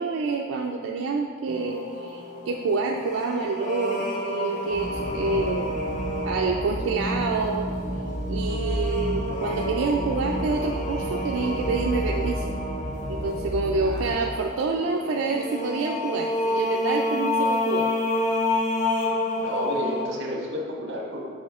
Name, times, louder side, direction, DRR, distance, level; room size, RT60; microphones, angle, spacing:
voice 1, 0.0-5.7 6.3-7.7 8.3-12.5 13.1-17.9, right 4 dB, 85° right, 1 dB, 0.4 m, -27 dB
sound 1, 1.5-20.0, left 2 dB, 40° left, 0.6 m, -30 dB
sound 2, 4.7-14.1, equal, 55° left, 1.4 m, -31 dB
voice 2, 13.8-14.4 19.4-21.3, equal, 60° right, -1 dB, 1.1 m, -32 dB
6.2 x 4.8 x 3.6 m, 2.1 s
head